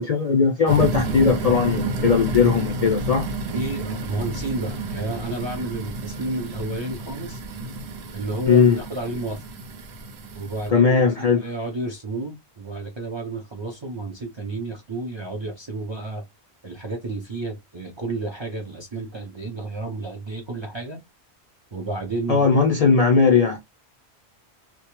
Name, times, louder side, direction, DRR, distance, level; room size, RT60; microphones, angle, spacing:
voice 1, 0.0-3.3 8.5-8.8 10.7-11.4 22.3-23.6, left 5 dB, 55° left, 0.4 m, -18 dB
sound 1, 0.7-10.7, right 2 dB, 90° right, 0.9 m, -30 dB
voice 2, 3.5-7.4 8.1-9.4 10.3-16.2 16.6-21.0 21.7-22.6, right 2 dB, 40° right, 0.4 m, -31 dB
2.2 x 2.0 x 2.9 m
omnidirectional pair, 1.1 m